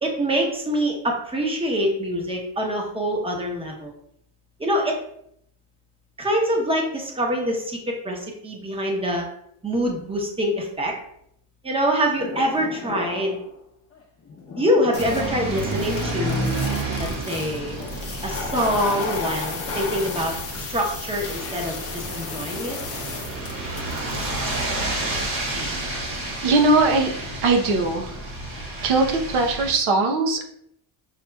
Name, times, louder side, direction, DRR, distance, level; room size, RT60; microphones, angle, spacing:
voice 1, 0.0-3.9 4.6-5.0 6.2-9.3 9.6-10.9 11.6-13.4 14.6-16.5 17.0-17.8 18.2-22.8, equal, 10° right, 1 dB, 0.8 m, -25 dB
sound 1, 12.2-13.5 13.9-24.3, left 4 dB, 30° left, 0.7 m, -34 dB
sound 2, 14.9-29.7, right 2 dB, 55° right, 1.5 m, -30 dB
voice 2, 26.4-27.1 27.4-28.1 28.8-30.4, right 3 dB, 85° right, 3 dB, 0.9 m, -20 dB
6.6 x 2.8 x 2.3 m, 0.72 s
cardioid pair, 135°, 46 cm